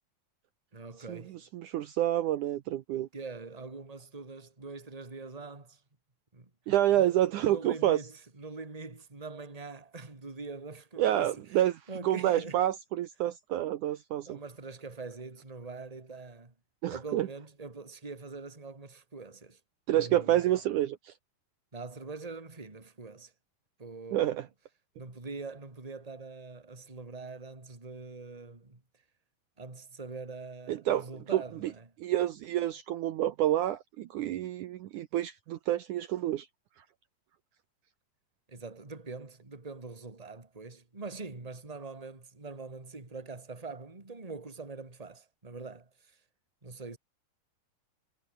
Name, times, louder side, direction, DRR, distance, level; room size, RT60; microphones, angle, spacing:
voice 1, 0.7-1.4 3.1-5.8 6.3-6.5 7.0-7.1 7.4-11.6 11.9-12.6 14.3-16.5 16.9-19.6 19.9-20.4 21.7-23.3 23.8-24.4 25.0-28.8 29.6-31.9 38.5-46.2 46.6-47.0, right 4 dB, 10° right, 2.4 m, -43 dB
voice 2, 1.5-3.1 6.7-8.0 11.0-11.8 12.0-14.4 16.8-17.3 19.9-21.1 24.1-24.5 30.7-31.1 31.3-31.4 32.0-36.5, right 13 dB, 70° right, 2.2 m, -28 dB
omnidirectional pair, 4.1 m